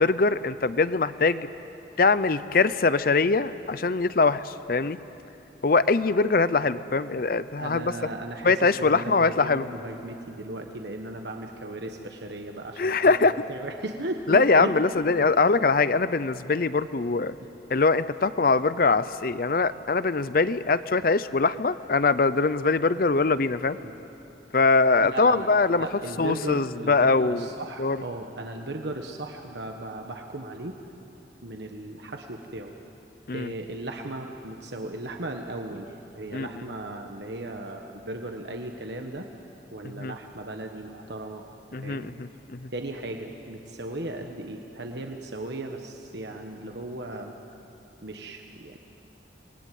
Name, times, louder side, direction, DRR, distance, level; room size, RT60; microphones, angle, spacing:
voice 1, 0.0-1.5 2.0-5.0 5.6-7.9 8.4-9.6 12.8-13.3 14.3-17.4 17.7-23.8 24.5-25.9 26.2-27.5 27.8-28.0 33.3-33.5 36.3-36.5 39.8-40.1 41.7-42.7, left 4 dB, 50° left, 15 dB, 0.5 m, -22 dB
voice 2, 7.6-14.7 15.2-15.3 17.4-17.6 23.8-23.9 25.1-30.8 31.4-32.7 33.3-39.3 39.7-41.4 41.8-42.1 42.7-47.3 48.0-48.8, right 2 dB, 65° right, 3 dB, 1.3 m, -36 dB
27.0 x 20.0 x 9.4 m, 2.8 s
head